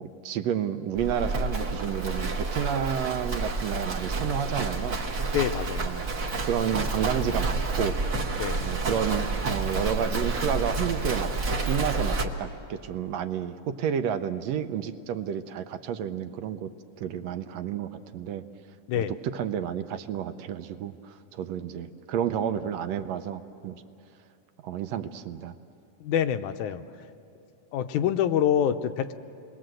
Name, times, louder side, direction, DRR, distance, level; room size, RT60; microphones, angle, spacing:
voice 1, 0.0-5.0 5.8-6.1 6.5-8.0 8.6-11.3 11.7-16.7 17.0-18.4 19.0-23.8 24.6-25.5, right 8 dB, 75° right, 9 dB, 1.7 m, -30 dB
Livestock farm animals working animals, 0.9-12.2, right 3 dB, 50° right, 1.0 m, -29 dB
voice 2, 5.3-5.9 8.4-8.6 18.9-19.1 26.0-26.8 27.7-29.1, left 9 dB, 90° left, 9 dB, 2.2 m, -26 dB
28.0 x 21.0 x 7.7 m, 2.6 s
omnidirectional pair, 3.4 m